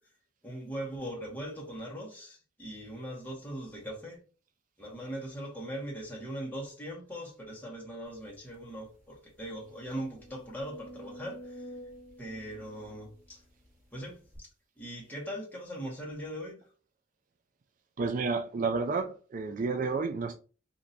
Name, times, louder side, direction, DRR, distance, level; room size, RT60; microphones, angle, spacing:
voice 1, 0.4-4.2 4.8-11.7 12.2-13.4 13.9-14.5 14.8-16.6 19.7-19.9, right 1 dB, 10° left, 1.5 m, -40 dB
sound 1, 8.3-8.4 8.8-8.9 9.4-13.7 14.3-14.4, equal, 10° right, 2.1 m, -49 dB
voice 2, 18.0-20.3, right 4 dB, 45° right, 0.3 m, -30 dB
5.1 x 2.8 x 2.7 m
head